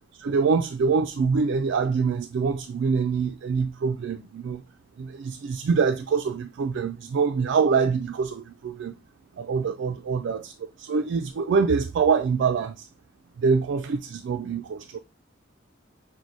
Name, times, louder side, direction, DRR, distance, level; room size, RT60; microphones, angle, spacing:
voice 1, 0.2-4.6 5.0-8.9 9.4-10.5 10.8-12.9 13.4-15.0, right 5 dB, 65° right, 0.3 m, -25 dB
6.1 x 2.1 x 3.9 m
head